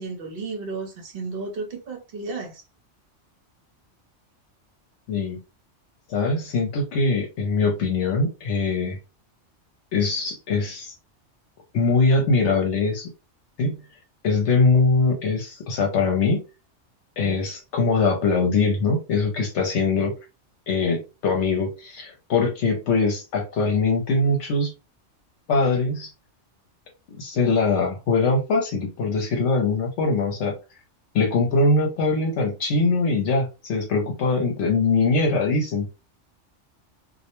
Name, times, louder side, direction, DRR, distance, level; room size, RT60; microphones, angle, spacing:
voice 1, 0.0-2.6, right 3 dB, 55° right, 0.8 m, -33 dB
voice 2, 5.1-5.4 6.1-9.0 9.9-11.0 11.7-13.1 13.6-13.8 14.2-16.4 17.2-20.1 20.7-24.7 25.5-26.1 27.2-30.6 31.1-35.9, left 3 dB, 75° left, 0.9 m, -22 dB
2.3 x 2.1 x 2.9 m
omnidirectional pair, 1.2 m